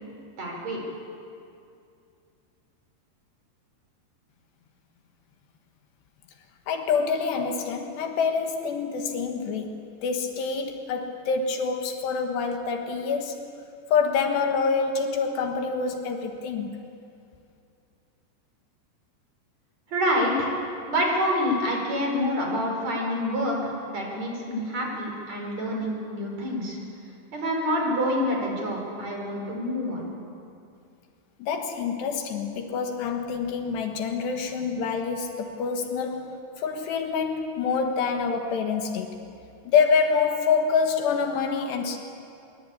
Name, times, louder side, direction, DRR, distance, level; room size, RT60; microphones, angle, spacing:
voice 1, 0.4-0.8 19.9-20.5 20.9-26.8 27.3-30.1, equal, 40° right, 0 dB, 6.1 m, -27 dB
voice 2, 6.7-9.7 10.0-13.5 13.9-16.8 31.4-39.2 39.7-42.0, left 5 dB, 75° left, 5 dB, 3.6 m, -26 dB
24.5 x 23.5 x 8.6 m, 2.5 s
omnidirectional pair, 5.1 m